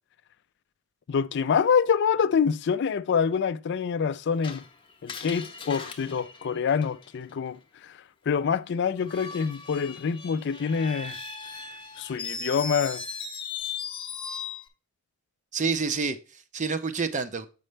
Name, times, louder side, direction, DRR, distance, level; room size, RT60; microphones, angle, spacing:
voice 1, 1.1-4.6 5.0-8.0 8.3-11.2 12.0-13.0, left 6 dB, 55° left, 0.4 m, -26 dB
Screech, 4.4-7.3 9.0-14.7, left 5 dB, 25° left, 0.8 m, -38 dB
voice 2, 15.5-17.5, right 5 dB, 35° right, 0.6 m, -28 dB
7.5 x 5.3 x 3.2 m
head